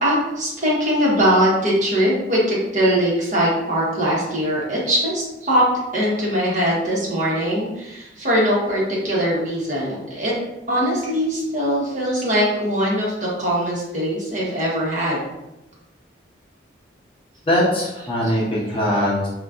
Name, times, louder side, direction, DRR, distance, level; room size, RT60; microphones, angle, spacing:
voice 1, 0.0-5.6 5.9-10.3 10.7-15.2 18.2-18.4, equal, 40° right, -6 dB, 1.0 m, -21 dB
voice 2, 17.5-19.3, equal, 30° left, -6 dB, 0.7 m, -21 dB
4.0 x 2.2 x 2.4 m, 0.93 s
head